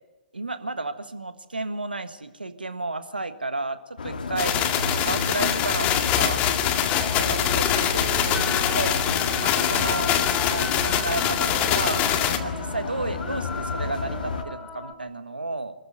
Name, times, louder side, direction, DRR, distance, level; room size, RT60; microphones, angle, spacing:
voice 1, 0.3-6.4 7.2-9.0 9.4-10.1 10.4-12.1 12.4-15.7, right 2 dB, 90° right, 10 dB, 1.6 m, -32 dB
sound 1, 4.0-14.4, left 4 dB, 70° left, 2.3 m, -31 dB
sound 2, 4.4-12.4, left 10 dB, 25° left, 2.0 m, -24 dB
sound 3, 6.9-14.9, left 4 dB, 10° left, 2.9 m, -36 dB
25.0 x 14.0 x 9.3 m, 1.1 s
figure-of-eight pair, 125°, 5 cm